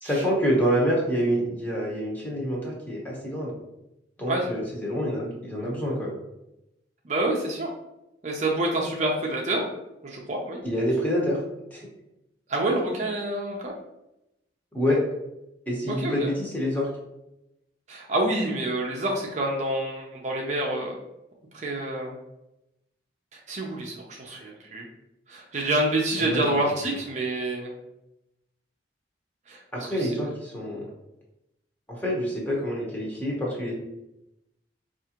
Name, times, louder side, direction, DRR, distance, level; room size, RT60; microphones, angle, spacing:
voice 1, 0.0-3.5 4.2-6.1 10.6-11.4 11.7-11.9 14.7-15.0 15.7-16.9 26.2-26.6 29.7-30.9 31.9-33.7, equal, 10° left, -4 dB, 0.9 m, -27 dB
voice 2, 7.0-7.7 8.2-9.6 10.0-10.6 12.5-13.8 15.9-16.3 17.9-20.9 21.5-22.2 23.3-24.9 25.3-27.7 29.5-29.6 29.9-30.2, right 1 dB, 40° right, -1 dB, 0.5 m, -27 dB
4.7 x 2.5 x 2.9 m, 0.89 s
head